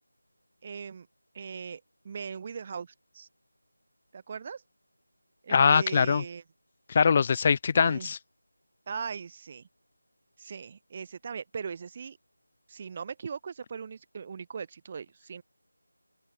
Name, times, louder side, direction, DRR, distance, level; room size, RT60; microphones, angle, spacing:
voice 1, 0.6-1.1 1.3-3.3 4.1-4.6 5.4-6.4 7.7-8.1 8.9-9.7 10.4-12.2 12.7-15.4, right 6 dB, 25° right, 5.2 m, -39 dB
voice 2, 5.5-6.2 6.9-8.2, left 6 dB, 25° left, 1.9 m, -22 dB
open air
figure-of-eight pair, 165°, 0 cm